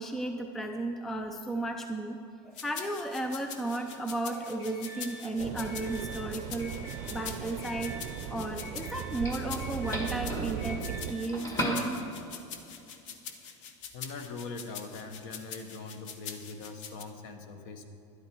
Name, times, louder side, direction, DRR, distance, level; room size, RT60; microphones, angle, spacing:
voice 1, 0.0-2.2 2.4-6.7 7.1-7.9 8.3-12.0, right 2 dB, ahead, 5 dB, 0.3 m, -34 dB
sound 1, 2.5-17.0, left 7 dB, 85° left, 1.1 m, -44 dB
Doorbell, 3.4-12.4, equal, 20° left, 1.5 m, -40 dB
sound 2, 5.4-11.1, right 9 dB, 40° right, 0.6 m, -38 dB
voice 2, 13.9-17.8, left 4 dB, 50° left, 7 dB, 1.2 m, -42 dB
12.0 x 11.5 x 4.6 m, 2.8 s
supercardioid pair, 165°, 16 cm